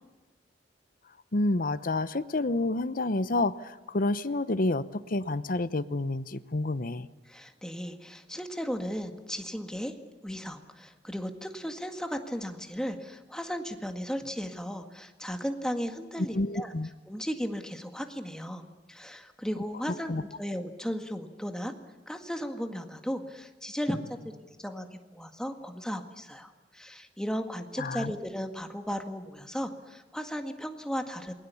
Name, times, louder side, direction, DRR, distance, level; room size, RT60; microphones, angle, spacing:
voice 1, 1.3-7.1 16.3-16.9 20.1-20.2 27.8-28.1, left 2 dB, 50° left, 14 dB, 0.9 m, -29 dB
voice 2, 7.3-9.9 10.2-16.7 17.1-18.6 18.9-21.7 22.1-24.0 24.4-31.3, equal, 5° left, 5 dB, 1.8 m, -35 dB
28.0 x 21.5 x 7.1 m, 1.2 s
head